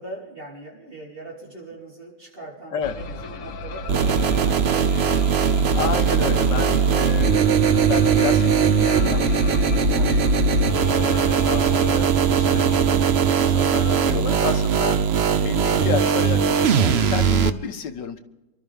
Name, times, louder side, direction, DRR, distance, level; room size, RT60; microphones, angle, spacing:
voice 1, 0.0-5.4 6.7-6.8, right 2 dB, 30° right, -4 dB, 4.6 m, -40 dB
sound 1, 2.8-13.0, left 2 dB, 55° left, 1.1 m, -35 dB
sound 2, 3.9-17.5, right 6 dB, 55° right, 0.7 m, -19 dB
voice 2, 5.8-10.2 10.9-18.2, left 7 dB, 70° left, 7 dB, 1.8 m, -31 dB
sound 3, 9.1-9.2 9.9-10.1 10.9-11.0 11.8-12.0 13.4-13.6 14.5-14.6, equal, 30° left, 2.1 m, -38 dB
27.0 x 12.5 x 3.6 m, 1.0 s
omnidirectional pair, 2.0 m